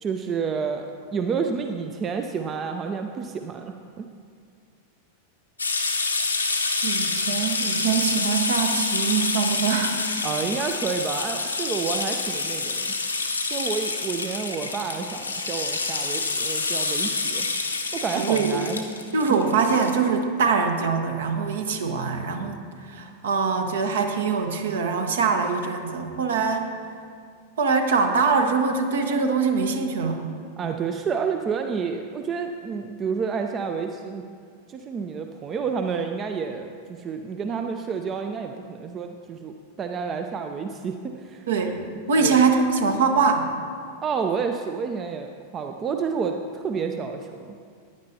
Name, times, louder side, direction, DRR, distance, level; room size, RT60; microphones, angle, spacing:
voice 1, 0.0-4.1 10.2-12.9 13.5-17.5 17.9-18.8 19.3-19.4 30.6-34.2 34.7-41.5 42.2-42.4 44.0-47.6, right 5 dB, 25° right, 6 dB, 0.5 m, -29 dB
sound 1, 5.6-19.9, left 3 dB, 80° left, 0.9 m, -27 dB
voice 2, 6.8-9.9 18.1-18.6 19.1-22.6 22.9-26.7 27.6-30.2 41.5-41.8 42.1-43.5, right 5 dB, 60° right, 5 dB, 1.1 m, -23 dB
15.0 x 10.5 x 2.8 m, 2.2 s
figure-of-eight pair, 90°, 0 cm